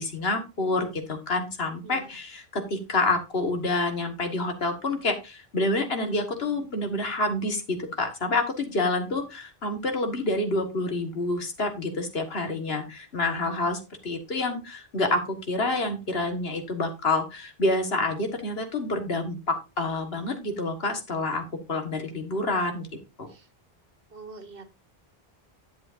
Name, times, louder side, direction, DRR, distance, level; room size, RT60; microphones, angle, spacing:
voice 1, 0.0-21.4 21.7-22.9 23.2-23.3, left 2 dB, 75° left, 5 dB, 2.0 m, -28 dB
voice 2, 1.8-2.1 23.3-23.5 24.1-24.8, right 3 dB, 65° right, 9 dB, 1.5 m, -45 dB
10.5 x 8.0 x 2.6 m, 0.27 s
omnidirectional pair, 1.0 m